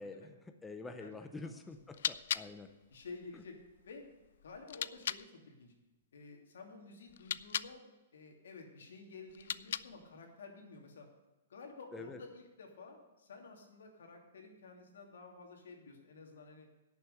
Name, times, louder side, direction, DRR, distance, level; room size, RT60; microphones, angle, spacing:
voice 1, 0.0-2.7 3.3-3.4 11.9-12.2, left 3 dB, 5° left, 7 dB, 0.5 m, -47 dB
hole puncher, 1.7-5.3 7.1-7.8 9.3-10.1, left 10 dB, 60° left, 0.3 m, -41 dB
voice 2, 2.9-3.6 3.8-4.0 4.4-5.7 6.1-7.8 8.1-11.1 11.5-16.7, left 4 dB, 85° left, 2 dB, 2.9 m, -52 dB
11.0 x 6.8 x 8.0 m, 1.1 s
hypercardioid pair, 165°, 0 cm